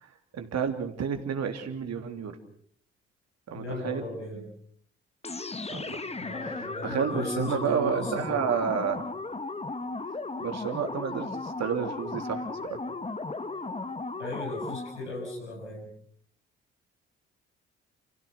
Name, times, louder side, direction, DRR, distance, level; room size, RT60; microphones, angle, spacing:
voice 1, 0.0-2.4 3.5-4.1 5.7-6.0 6.8-9.0 10.4-12.8, right 7 dB, 50° right, 6 dB, 3.2 m, -30 dB
voice 2, 3.5-4.4 6.2-8.4 14.2-15.9, left 1 dB, 90° left, -3 dB, 6.7 m, -36 dB
sound 1, 5.2-15.1, left 3 dB, 20° left, 1.6 m, -36 dB
30.0 x 16.5 x 6.2 m, 0.62 s
figure-of-eight pair, 45°, 34 cm